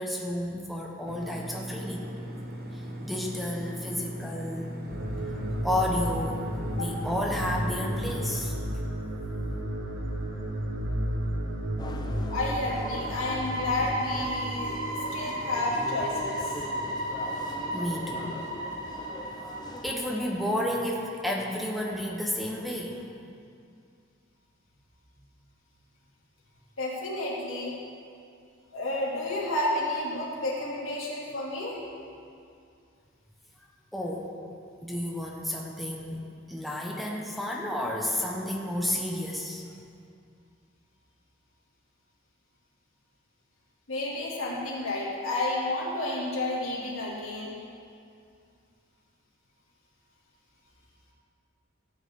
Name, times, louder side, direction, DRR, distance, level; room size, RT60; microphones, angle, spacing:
voice 1, 0.0-2.1 2.7-4.7 5.6-6.4 6.7-8.5 17.7-18.3 19.8-23.0 33.9-34.3 34.8-39.6, left 1 dB, ahead, -1 dB, 0.9 m, -31 dB
sound 1, 1.1-8.5, equal, 45° right, 0.9 m, -39 dB
sound 2, 4.9-21.6 21.9-22.1 22.5-22.6, right 1 dB, 65° right, 1.5 m, -33 dB
sound 3, 11.8-19.9, left 1 dB, 20° left, 0.5 m, -41 dB
voice 2, 12.3-16.4 26.8-27.7 28.7-31.8 43.9-47.6, left 2 dB, 80° left, -5 dB, 2.7 m, -31 dB
14.5 x 9.0 x 3.7 m, 2.4 s
head